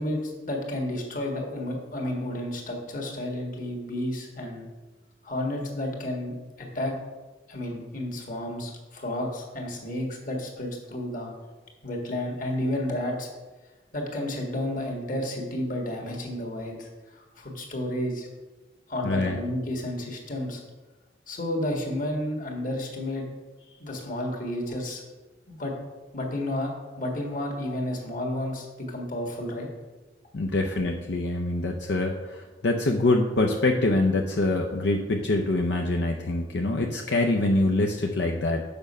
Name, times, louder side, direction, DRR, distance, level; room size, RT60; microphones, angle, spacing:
voice 1, 0.0-4.6 5.2-7.0 7.5-11.3 11.8-13.3 13.9-18.3 18.9-20.6 21.3-23.2 23.8-25.0 25.5-25.7 26.1-29.7, left 1 dB, 50° left, 0 dB, 1.6 m, -31 dB
voice 2, 19.0-19.4 30.3-38.6, left 2 dB, 80° left, 2 dB, 0.6 m, -25 dB
6.9 x 5.2 x 5.4 m, 1.2 s
head